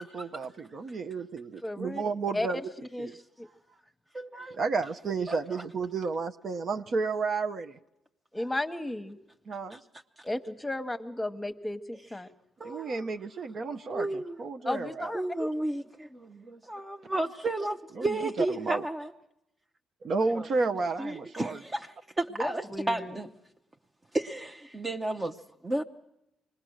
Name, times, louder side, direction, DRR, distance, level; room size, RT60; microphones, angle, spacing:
voice 1, 0.0-2.6 3.0-3.1 4.6-7.8 9.5-9.8 12.6-15.2 18.0-18.1 18.5-18.8 20.0-21.6, right 4 dB, 55° right, 0.8 m, -32 dB
voice 2, 1.6-2.0 2.3-2.5 2.9-3.1 3.4-3.5 8.3-9.2 10.2-12.3 14.6-15.5 22.4-23.2, left 1 dB, 10° left, 1.2 m, -34 dB
voice 3, 4.1-4.6 5.3-5.6 9.7-9.8 10.2-10.3 12.6-13.1 13.9-14.4 15.1-19.1 20.3-20.5 21.0-23.3 24.1-25.4 25.6-25.8, right 2 dB, 20° right, 0.8 m, -33 dB
25.0 x 20.0 x 6.4 m
cardioid pair, 90°, 0 cm